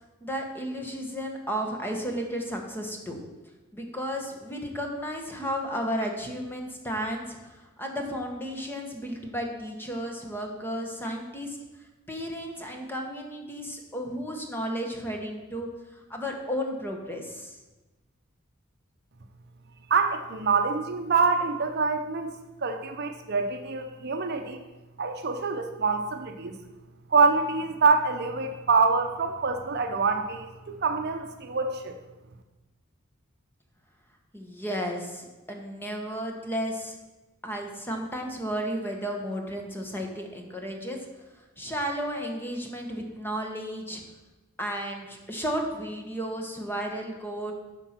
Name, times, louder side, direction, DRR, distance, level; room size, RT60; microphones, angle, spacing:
voice 1, 0.2-3.2 3.7-11.6 12.1-17.6 34.3-37.0 37.4-41.0 41.6-44.0 44.6-47.5, equal, 10° left, 2 dB, 1.2 m, -33 dB
voice 2, 19.9-22.3 22.6-24.6 25.0-26.6 27.1-31.9, right 4 dB, 50° right, 5 dB, 0.7 m, -25 dB
12.0 x 4.5 x 5.9 m, 1.1 s
head